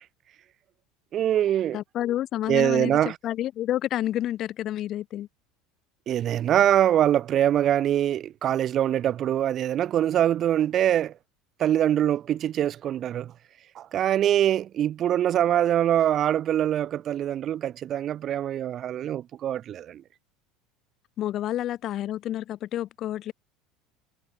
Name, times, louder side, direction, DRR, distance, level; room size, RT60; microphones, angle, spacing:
voice 1, 1.1-1.8 2.5-3.2 6.1-11.1 11.6-13.3 13.7-20.0, right 11 dB, 45° right, 2.8 m, -23 dB
voice 2, 1.7-5.3 21.2-23.3, left 12 dB, 50° left, 6.0 m, -29 dB
hypercardioid pair, 90°, 0 cm